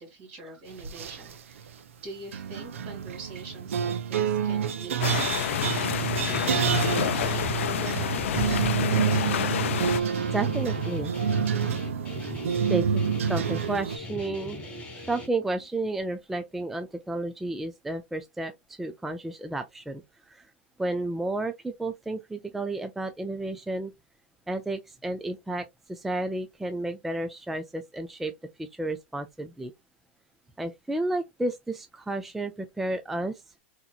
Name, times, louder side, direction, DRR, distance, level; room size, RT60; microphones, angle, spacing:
voice 1, 0.0-1.7 2.0-8.5, right 2 dB, 45° right, 2.4 m, -44 dB
sound 1, 0.8-1.4 2.3-14.0, right 7 dB, 85° right, 0.6 m, -28 dB
sound 2, 5.0-10.0, left 10 dB, 80° left, 0.4 m, -28 dB
Guitar, 5.5-15.3, left 2 dB, 15° left, 1.2 m, -39 dB
voice 2, 10.3-11.1 12.7-13.0 13.3-14.6 15.1-18.5 18.8-20.0 20.3-20.4 20.8-23.9 24.5-28.3 28.6-29.7 30.6-33.4, right 2 dB, 5° right, 0.3 m, -31 dB
3.9 x 2.8 x 2.3 m
supercardioid pair, 145°, 7 cm